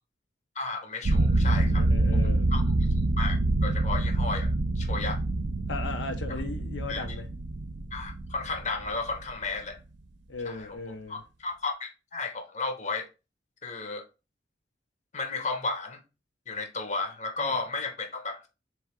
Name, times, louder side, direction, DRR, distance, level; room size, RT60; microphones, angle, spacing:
voice 1, 0.6-1.9 2.5-2.6 3.2-5.2 6.9-7.0 7.9-9.8 10.4-10.8 11.1-13.1 13.6-14.1 15.1-16.0 16.5-18.5, left 3 dB, 40° left, 0.8 m, -33 dB
sound 1, 1.0-9.5, right 2 dB, 75° right, 0.6 m, -26 dB
voice 2, 1.7-2.5 5.7-7.3 10.3-11.2 17.4-17.5, left 3 dB, 85° left, 0.8 m, -37 dB
3.7 x 3.1 x 4.6 m
head